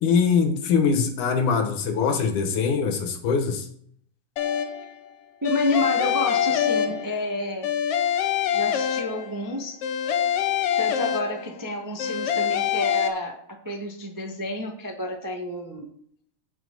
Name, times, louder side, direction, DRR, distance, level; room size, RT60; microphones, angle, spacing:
voice 1, 0.0-3.7, left 5 dB, 85° left, 5 dB, 2.9 m, -22 dB
sound 1, 4.4-4.9 5.4-7.3 7.6-9.4 9.8-11.6 12.0-13.1, left 9 dB, 65° left, 1.6 m, -25 dB
voice 2, 5.4-7.7 8.5-9.8 10.8-15.9, left 1 dB, 25° right, 1 dB, 0.4 m, -30 dB
16.5 x 6.0 x 4.1 m, 0.64 s
omnidirectional pair, 3.5 m